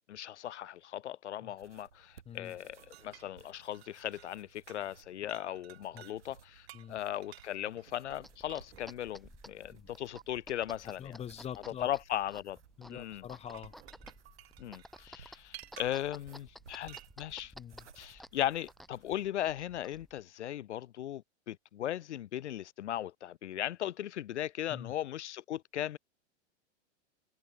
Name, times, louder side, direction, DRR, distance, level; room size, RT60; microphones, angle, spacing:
voice 1, 0.1-11.2 11.7-12.6 12.9-13.2 14.6-17.5 18.0-26.0, left 12 dB, 70° left, 0.8 m, -38 dB
sound 1, 1.6-19.3, right 8 dB, 75° right, 7.7 m, -62 dB
sound 2, 2.8-4.4 4.7-5.0 5.3-6.2 6.7-8.9 10.2-10.3 13.3-16.2 16.9-17.1, right 14 dB, 60° right, 3.1 m, -54 dB
sound 3, 8.1-20.2, equal, ahead, 7.7 m, -55 dB
voice 2, 11.0-11.9 12.8-13.7 17.6-17.9 24.7-24.9, left 9 dB, 15° left, 1.0 m, -44 dB
hypercardioid pair, 105°, 36 cm